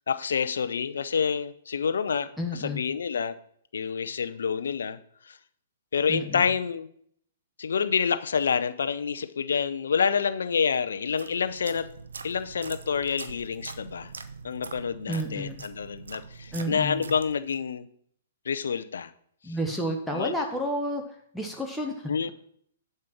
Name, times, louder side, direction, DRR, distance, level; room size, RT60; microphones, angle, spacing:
voice 1, 0.1-3.3 3.7-5.0 5.3-5.4 5.9-6.9 7.6-11.9 12.2-14.1 14.4-17.9 18.5-19.1 19.5-19.6 20.1-20.3 22.1-22.3, left 6 dB, 70° left, 13 dB, 0.6 m, -28 dB
voice 2, 2.4-2.8 6.1-6.5 15.1-15.6 16.5-17.1 19.4-21.0 21.3-22.3, equal, ahead, -1 dB, 1.1 m, -31 dB
sound 1, 11.0-17.7, right 4 dB, 75° right, 0.7 m, -43 dB
7.5 x 5.4 x 6.0 m, 0.65 s
figure-of-eight pair, 120°, 0 cm